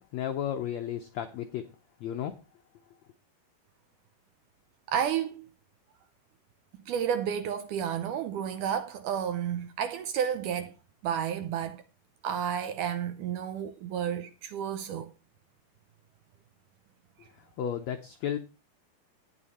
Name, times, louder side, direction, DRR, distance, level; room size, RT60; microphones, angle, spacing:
voice 1, 0.0-1.6 2.0-2.3 17.2-17.3 17.6-18.4, left 9 dB, 90° left, 1.5 m, -33 dB
voice 2, 4.9-5.5 6.9-10.7 11.0-11.8 12.2-15.1, right 8 dB, 75° right, 1.9 m, -31 dB
13.0 x 9.3 x 4.2 m
omnidirectional pair, 4.3 m